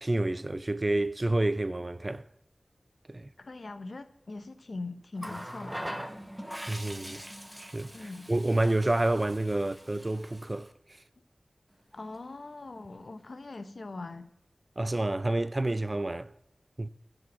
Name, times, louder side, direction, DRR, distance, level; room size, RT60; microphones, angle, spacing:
voice 1, 0.0-2.3 3.1-3.3 6.7-7.2 7.6-10.7 14.8-16.3 16.8-16.9, right 2 dB, 35° right, 0.4 m, -29 dB
voice 2, 3.4-5.8 7.9-8.3 11.9-14.3, left 3 dB, 65° left, 0.8 m, -41 dB
Water tap faucet, 5.2-10.7 11.9-12.1, equal, 10° right, 0.9 m, -42 dB
11.5 x 5.1 x 6.2 m
wide cardioid pair, 60°, 0 cm